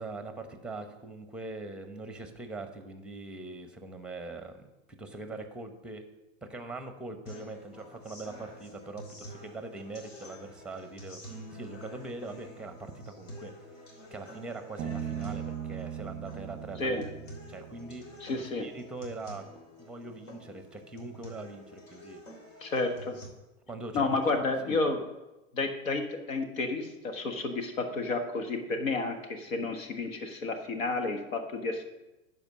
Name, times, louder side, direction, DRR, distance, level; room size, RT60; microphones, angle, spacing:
voice 1, 0.0-4.7 5.0-6.0 6.4-17.0 17.5-19.4 19.8-22.2 23.7-24.1 24.4-24.8, right 2 dB, ahead, 7 dB, 0.9 m, -42 dB
sound 1, 7.3-23.3, equal, 65° left, 3.1 m, -48 dB
Bass guitar, 14.8-18.3, right 10 dB, 30° right, 0.6 m, -39 dB
voice 2, 18.2-18.7 22.6-23.1 23.9-25.0 25.5-31.8, left 3 dB, 80° left, 5 dB, 1.6 m, -31 dB
10.5 x 4.8 x 6.3 m, 1.0 s
hypercardioid pair, 115°, 40 cm